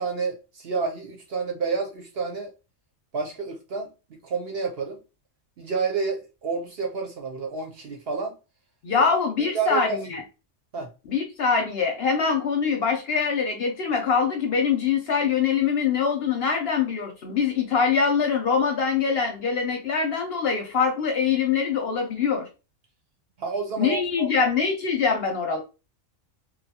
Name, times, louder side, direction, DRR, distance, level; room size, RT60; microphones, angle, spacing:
voice 1, 0.0-2.5 3.1-3.9 4.2-5.0 5.6-8.3 9.0-9.1 9.5-10.0 10.7-10.9 23.4-24.3, right 4 dB, 55° right, 0.8 m, -29 dB
voice 2, 8.8-10.2 11.1-22.5 23.8-25.6, left 6 dB, 60° left, 0.7 m, -24 dB
2.6 x 2.3 x 2.7 m
omnidirectional pair, 1.4 m